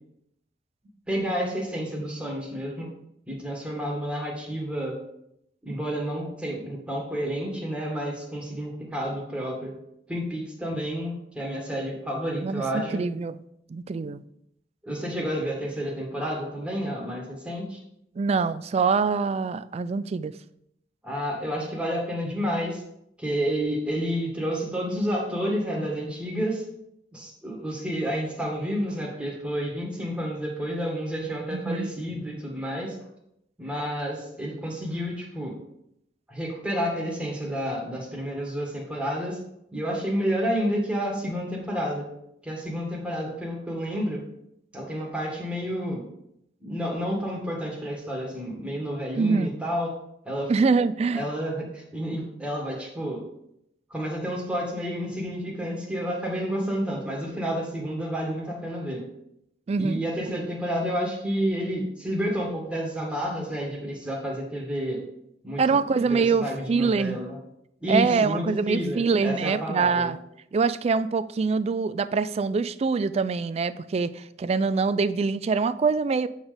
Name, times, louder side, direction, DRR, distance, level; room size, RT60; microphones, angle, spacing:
voice 1, 1.1-2.9 3.3-5.0 5.6-9.7 10.1-13.0 14.8-17.8 21.0-22.8 23.2-26.6 27.1-33.0 33.6-35.5 36.3-39.4 39.7-42.1 42.4-44.2 44.7-46.0 46.6-50.0 50.2-50.5 51.1-53.2 53.9-59.0 59.8-65.0 65.4-67.4 67.8-70.1, equal, 5° right, 1.7 m, -30 dB
voice 2, 12.4-13.4 13.7-14.2 18.2-20.3 31.5-31.9 49.2-49.5 50.5-51.3 59.7-60.0 65.6-67.2 67.9-70.2 70.5-76.3, right 4 dB, 35° right, 0.3 m, -24 dB
8.1 x 3.9 x 5.1 m
head